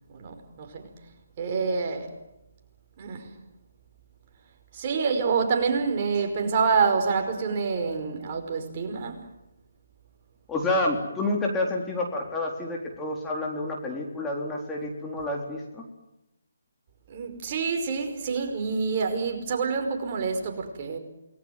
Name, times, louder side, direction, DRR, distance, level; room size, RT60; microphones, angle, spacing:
voice 1, 0.1-0.9 1.4-2.1 3.0-3.3 4.7-9.2 17.1-21.0, right 5 dB, 35° right, 4 dB, 5.2 m, -27 dB
voice 2, 10.5-15.9, left 2 dB, 10° left, -1 dB, 4.0 m, -29 dB
28.5 x 20.5 x 9.5 m, 0.89 s
figure-of-eight pair, 150°, 0 cm